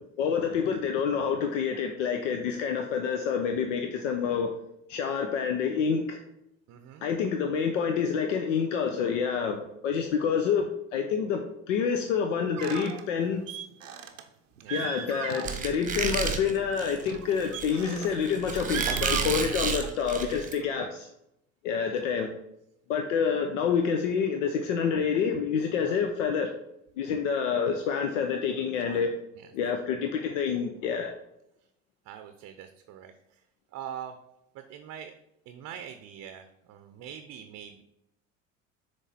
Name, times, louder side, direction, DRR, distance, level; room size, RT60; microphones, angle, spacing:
voice 1, 0.2-4.5 4.9-6.2 7.0-13.4 14.7-21.1 21.6-22.3 22.9-26.5 27.0-29.1 29.5-31.1, left 6 dB, 75° left, 5 dB, 0.7 m, -28 dB
voice 2, 6.7-7.0 14.6-14.8 20.6-20.9 21.8-22.2 25.8-26.0 28.8-29.1 29.3-29.5 32.0-33.4 33.7-34.2 34.5-35.1 35.5-37.8, right 9 dB, 45° right, 8 dB, 0.6 m, -44 dB
sound 1, 12.6-13.0 13.5-14.2 14.6-15.8 16.1-16.4 17.1-18.2 18.6-19.9, right 8 dB, 90° right, 0.6 m, -37 dB
Squeak, 15.4-20.5, right 6 dB, 20° right, 1.0 m, -31 dB
7.2 x 3.3 x 4.0 m, 0.81 s
hypercardioid pair, 70°, 38 cm